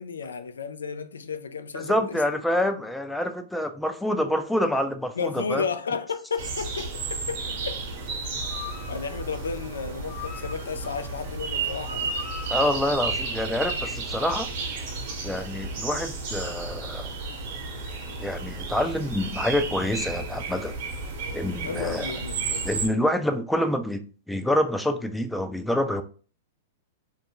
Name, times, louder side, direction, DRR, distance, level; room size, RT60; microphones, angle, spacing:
voice 1, 0.0-2.2 5.2-7.8 8.9-12.1 21.6-22.7, left 5 dB, 90° left, 0.3 m, -33 dB
voice 2, 1.7-5.6 12.5-14.5 15.2-17.1 18.2-20.7 21.3-22.1 22.6-24.0 24.3-26.0, left 1 dB, 5° left, 0.4 m, -27 dB
sound 1, 6.4-22.9, right 4 dB, 60° right, 0.9 m, -33 dB
sound 2, 8.4-14.3 15.0-15.1, left 6 dB, 70° left, 0.9 m, -44 dB
2.6 x 2.1 x 3.7 m
hypercardioid pair, 115°, 0 cm